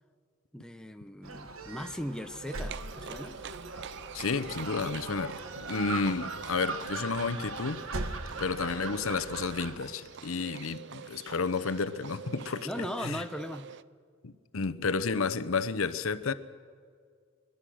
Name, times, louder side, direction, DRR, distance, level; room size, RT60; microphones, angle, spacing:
voice 1, 0.5-3.4 12.6-13.7, equal, 5° left, 0.7 m, -38 dB
Gull seagull, 1.2-9.8, right 3 dB, 80° right, 1.4 m, -39 dB
Livestock farm animals working animals, 2.5-13.8, right 7 dB, 55° right, 0.5 m, -45 dB
voice 2, 4.1-7.8 8.4-13.2 14.2-16.3, left 4 dB, 85° left, 0.8 m, -31 dB
22.0 x 22.0 x 6.4 m
head